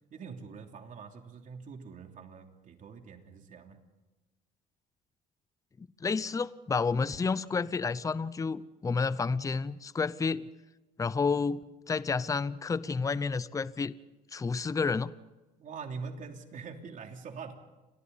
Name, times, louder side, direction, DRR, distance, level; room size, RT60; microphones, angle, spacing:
voice 1, 0.1-3.8 15.6-17.5, right 5 dB, 50° right, 4 dB, 3.1 m, -44 dB
voice 2, 5.8-10.5 11.0-13.9 14.3-15.1, left 4 dB, 20° left, 17 dB, 0.6 m, -30 dB
29.5 x 23.0 x 4.2 m, 1.1 s
cardioid pair, 110°, 17 cm